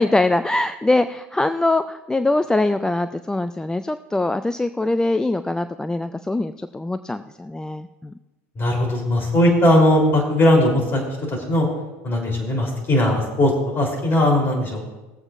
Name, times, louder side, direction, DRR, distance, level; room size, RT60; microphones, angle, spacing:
voice 1, 0.0-8.1, left 2 dB, 10° left, 11 dB, 0.4 m, -22 dB
voice 2, 8.6-11.7 12.0-14.8, left 1 dB, 30° left, 0 dB, 3.5 m, -19 dB
21.0 x 7.8 x 2.5 m, 1.1 s
hypercardioid pair, 75°, 8 cm